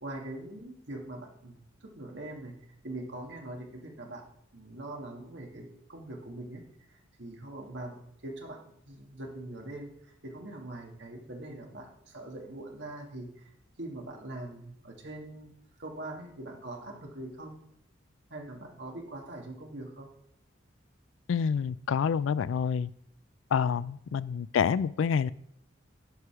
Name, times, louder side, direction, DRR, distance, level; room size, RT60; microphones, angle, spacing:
voice 1, 0.0-2.5 2.8-4.2 4.5-6.6 6.9-13.5 13.8-15.5 15.8-17.6 18.3-20.1, right 1 dB, 65° right, 1 dB, 1.8 m, -42 dB
voice 2, 21.3-22.9 23.5-25.3, left 6 dB, 80° left, 19 dB, 0.3 m, -27 dB
9.3 x 4.9 x 5.9 m, 0.71 s
head